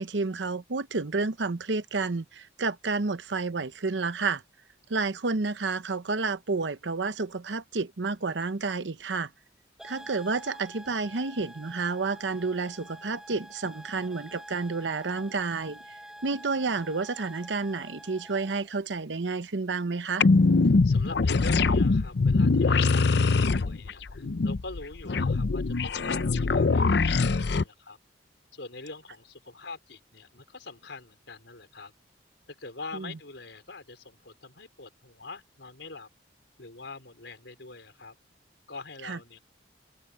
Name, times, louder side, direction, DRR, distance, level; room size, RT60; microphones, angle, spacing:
voice 1, 0.0-4.4 4.9-9.3 9.8-15.8 16.2-20.3 32.9-33.1 39.0-39.2, right 4 dB, 85° right, 0.9 m, -30 dB
sound 1, 9.8-18.7, equal, 5° right, 5.9 m, -47 dB
sound 2, 20.2-27.6, left 3 dB, 65° left, 0.6 m, -23 dB
voice 2, 20.6-28.0 28.5-31.9 32.5-36.1 36.6-38.2 38.7-39.4, left 3 dB, 85° left, 4.8 m, -44 dB
head